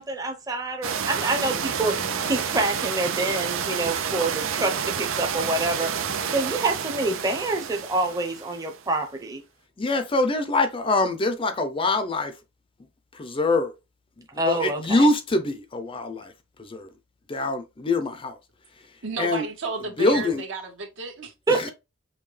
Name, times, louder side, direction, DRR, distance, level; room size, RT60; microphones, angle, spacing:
voice 1, 0.0-2.0 2.3-5.9 6.3-9.4 14.4-15.1 21.5-21.7, right 2 dB, 20° right, 0.7 m, -26 dB
sound 1, 0.8-8.8, right 7 dB, 90° right, 0.6 m, -29 dB
voice 2, 9.8-12.3 13.1-13.7 14.3-16.3 16.6-16.9 17.3-18.4 19.2-19.5 20.0-20.4 21.5-21.7, left 2 dB, 25° left, 0.5 m, -24 dB
voice 3, 19.0-21.3, right 3 dB, 70° right, 1.3 m, -32 dB
5.5 x 2.2 x 3.3 m
head